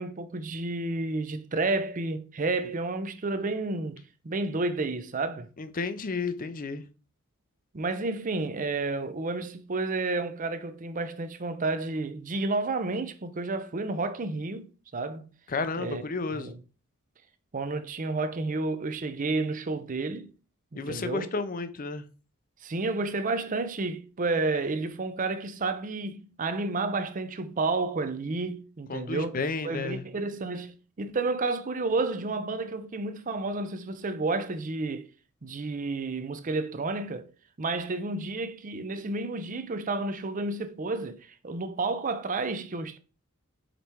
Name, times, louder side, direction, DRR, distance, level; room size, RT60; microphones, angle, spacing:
voice 1, 0.0-5.5 7.7-14.7 14.9-15.3 15.8-16.0 16.3-16.6 17.5-20.3 20.7-21.3 22.6-29.4 29.6-35.1 35.4-37.3 37.6-43.0, right 3 dB, 40° right, 0.6 m, -31 dB
voice 2, 5.6-6.8 15.5-16.5 20.8-22.0 28.9-30.0, left 4 dB, 40° left, 0.6 m, -32 dB
5.1 x 4.3 x 4.6 m
head